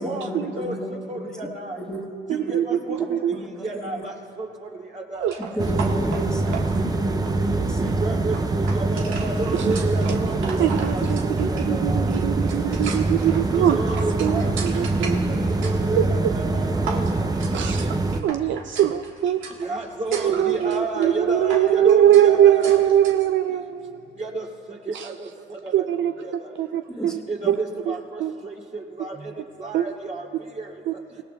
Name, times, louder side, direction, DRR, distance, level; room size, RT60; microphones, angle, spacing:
voice 1, 0.0-0.9 1.8-2.0 2.4-2.5 3.3-4.0 5.6-7.9 15.0-15.6 27.0-27.1 27.4-27.5, equal, 5° left, -1 dB, 1.7 m, -31 dB
voice 2, 1.1-1.8 2.3-3.0 3.6-4.5 5.1-5.6 7.8-12.3 13.5-14.5 15.2-15.3 15.6-17.0 19.6-22.8 24.2-24.5 24.9-25.3 25.8-25.9 26.2-26.3 27.3-29.2 29.6-30.3 30.6-30.7, right 2 dB, 40° right, -1 dB, 2.7 m, -31 dB
voice 3, 2.3-3.4 5.2-5.3 9.5-9.7 10.1-10.2 10.6-13.8 14.2-15.2 15.9-16.3 17.5-18.0 18.2-19.4 20.1-24.0 24.9-25.2 25.7-26.1 26.6-27.2 27.5-27.6 27.9-28.0 28.2-28.3 29.7-29.9 30.9-31.0, right 11 dB, 70° right, 8 dB, 0.5 m, -21 dB
sound 1, 5.2-23.3, right 5 dB, 85° right, 1.5 m, -38 dB
sound 2, 5.6-18.2, right 2 dB, 20° right, 0.7 m, -24 dB
25.5 x 17.5 x 2.3 m, 2.5 s
cardioid pair, 90°, 20 cm